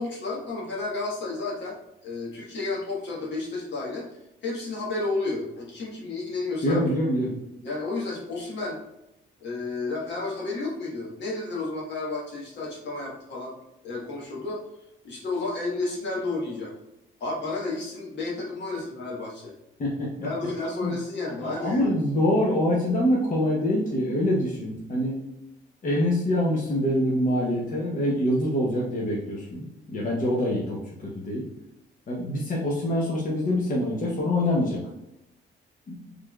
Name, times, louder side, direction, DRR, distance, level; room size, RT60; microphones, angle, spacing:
voice 1, 0.0-1.8 2.0-4.0 4.4-6.8 7.6-8.8 9.4-13.5 13.8-14.6 15.0-16.7 17.2-19.5 20.2-21.9, left 3 dB, 60° left, -3 dB, 1.3 m, -31 dB
voice 2, 6.6-7.4 19.8-20.3 20.8-20.9 21.4-25.2 25.8-31.5 32.1-34.8 35.9-36.0, left 1 dB, 40° left, -4 dB, 0.9 m, -25 dB
4.0 x 3.3 x 2.3 m, 0.88 s
cardioid pair, 90°, 20 cm